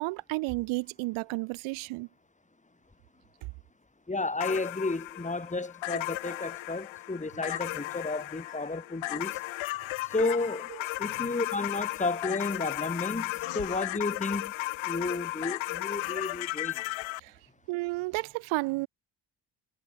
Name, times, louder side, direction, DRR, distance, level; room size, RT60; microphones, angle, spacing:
voice 1, 0.0-2.1 10.7-10.8 11.2-11.3 17.2-17.4 17.7-18.9, right 23 dB, 85° right, 1.0 m, -32 dB
voice 2, 4.1-9.4 10.1-10.7 11.0-14.5 14.8-16.8, left 3 dB, 15° left, 2.7 m, -32 dB
sound 1, 4.4-17.2, left 18 dB, 80° left, 1.7 m, -35 dB
supercardioid pair, 55°, 46 cm